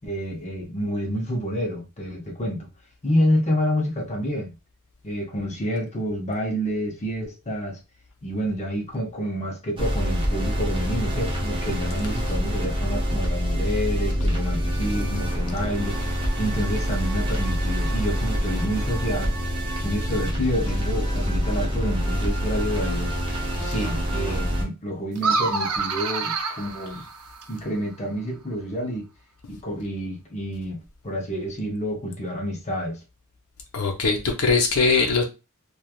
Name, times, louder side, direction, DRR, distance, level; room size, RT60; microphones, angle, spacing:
voice 1, 0.0-2.7 3.0-4.5 5.0-7.8 8.2-19.4 19.8-23.2 23.6-27.1 27.5-29.1 29.5-30.8 31.0-33.0, equal, 30° left, 0.8 m, -28 dB
sound 1, 9.8-24.6, equal, 20° right, 0.7 m, -26 dB
sound 2, 25.1-27.6, right 4 dB, 80° right, 0.6 m, -27 dB
voice 2, 33.7-35.2, left 4 dB, 70° left, 0.7 m, -22 dB
3.2 x 2.3 x 2.3 m
head